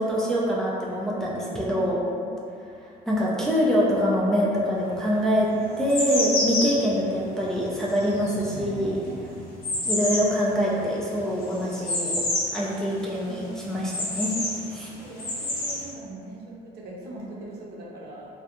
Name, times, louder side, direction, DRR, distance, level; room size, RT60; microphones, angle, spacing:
voice 1, 0.0-2.0 3.1-5.5 5.8-9.0 9.9-12.1 12.5-14.3 14.7-14.9, equal, 5° left, -6 dB, 0.3 m, -24 dB
voice 2, 1.0-2.3 5.5-6.2 8.4-9.3 13.1-13.9 14.7-18.3, right 1 dB, 70° right, -4 dB, 0.6 m, -41 dB
sound 1, 4.8-4.9 5.5-12.6 12.9-13.0 13.4-14.6 15.1-15.8, left 1 dB, 65° left, 0.8 m, -29 dB
2.3 x 2.1 x 2.8 m, 2.5 s
cardioid pair, 110°, 17 cm